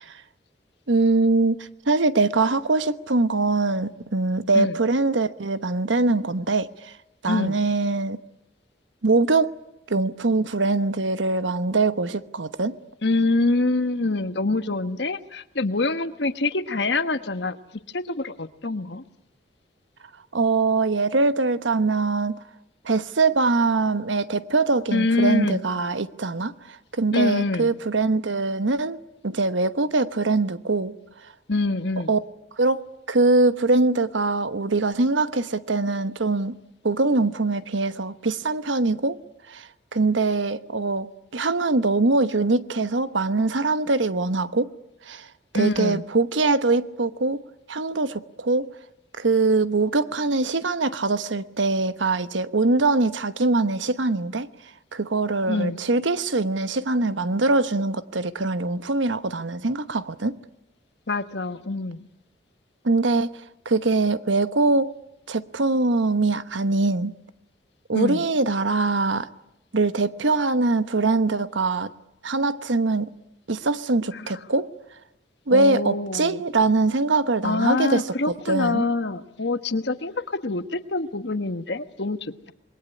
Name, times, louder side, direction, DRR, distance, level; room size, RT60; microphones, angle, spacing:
voice 1, 0.9-6.9 7.2-8.2 9.0-9.5 9.9-12.8 20.3-22.4 22.8-29.0 29.2-30.9 32.1-32.2 32.6-36.5 36.8-39.2 39.5-44.7 45.1-45.3 45.5-47.4 47.7-48.7 49.2-54.5 54.9-60.4 62.8-63.3 63.6-64.9 65.3-67.1 67.9-69.3 69.7-71.9 72.2-73.1 73.5-74.7 75.5-78.9, right 3 dB, 80° right, 1.1 m, -23 dB
voice 2, 7.3-7.6 13.0-17.6 17.9-19.0 24.9-25.6 27.1-27.7 31.5-32.1 45.5-46.0 55.5-55.8 61.1-62.1 67.9-68.2 74.1-74.4 75.5-76.4 77.4-82.5, left 3 dB, 65° left, 1.3 m, -25 dB
27.0 x 21.5 x 9.9 m
head